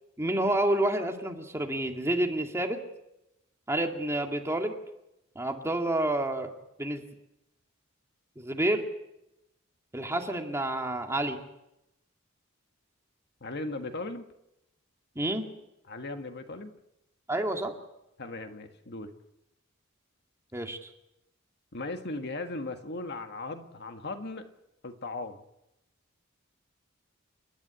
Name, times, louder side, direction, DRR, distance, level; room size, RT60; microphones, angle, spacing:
voice 1, 0.2-2.8 3.7-4.7 5.4-6.5 6.8-7.0 8.4-8.8 9.9-11.4 15.2-15.5 17.3-17.7 20.5-20.9, right 1 dB, 15° right, 3 dB, 2.1 m, -29 dB
voice 2, 13.4-14.3 15.9-16.7 18.2-19.1 21.7-24.5 24.8-25.4, left 2 dB, 55° left, 7 dB, 1.6 m, -37 dB
28.5 x 11.0 x 9.8 m, 0.88 s
head